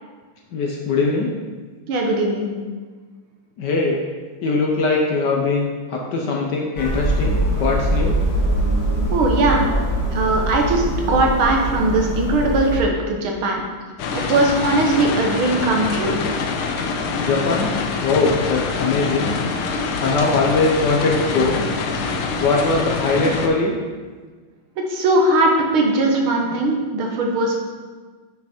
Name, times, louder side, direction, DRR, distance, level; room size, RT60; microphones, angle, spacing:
voice 1, 0.5-1.3 3.6-4.0 4.4-8.2 17.2-17.7 18.0-19.3 20.0-21.7 22.4-23.8, left 3 dB, 60° left, 0 dB, 1.4 m, -21 dB
voice 2, 1.9-2.5 9.1-9.7 10.1-13.6 14.1-16.2 24.8-27.6, right 2 dB, 75° right, 1 dB, 2.0 m, -19 dB
sound 1, 6.8-12.8, right 1 dB, 45° left, 2.2 m, -22 dB
sound 2, 14.0-23.5, left 4 dB, 90° left, 1.6 m, -25 dB
8.4 x 6.0 x 4.4 m, 1.5 s
omnidirectional pair, 2.3 m